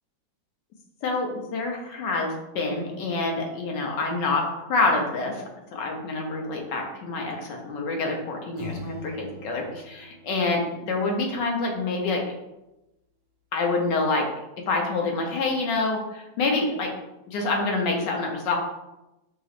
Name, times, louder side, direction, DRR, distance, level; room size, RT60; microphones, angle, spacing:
voice 1, 1.0-5.4 5.7-12.2 13.5-14.3 14.7-16.9 17.3-18.6, left 3 dB, 70° left, 1 dB, 1.4 m, -27 dB
sound 1, 8.6-11.2, left 1 dB, 60° right, 1.4 m, -41 dB
5.5 x 3.0 x 2.5 m, 0.94 s
omnidirectional pair, 2.0 m